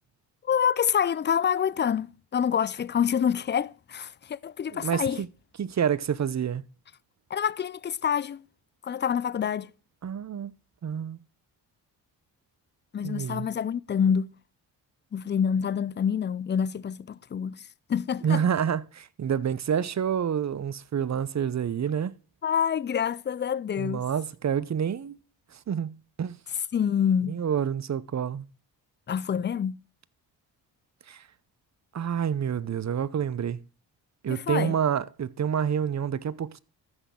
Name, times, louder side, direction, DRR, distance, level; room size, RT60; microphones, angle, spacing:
voice 1, 0.4-5.2 7.3-8.4 8.8-9.7 12.9-14.3 15.1-18.4 22.4-24.0 26.7-27.4 29.1-29.8 34.3-34.7, left 8 dB, 25° left, 0.4 m, -27 dB
voice 2, 4.7-5.3 5.6-6.6 10.0-10.5 10.8-11.2 13.0-13.5 18.2-22.1 23.8-25.2 25.5-26.4 27.3-28.4 31.1-31.2 31.9-33.6 34.2-36.6, right 8 dB, 35° right, 0.8 m, -28 dB
14.0 x 6.2 x 3.8 m
supercardioid pair, 50°, 48 cm